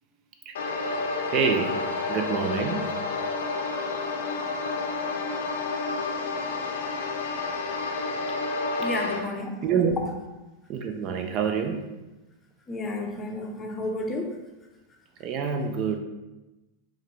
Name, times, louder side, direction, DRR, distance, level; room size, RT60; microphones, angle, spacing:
sound 1, 0.6-9.2, left 3 dB, 60° left, 0.5 m, -30 dB
voice 1, 1.3-1.8 2.1-2.9 8.8-9.1 9.6-10.1 10.7-11.8 15.2-16.0, right 6 dB, 35° right, 5 dB, 0.4 m, -27 dB
voice 2, 8.8-9.5 12.7-14.3, left 2 dB, 20° left, 1 dB, 0.6 m, -31 dB
4.9 x 2.6 x 3.1 m, 1.1 s
figure-of-eight pair, 90°, 0 cm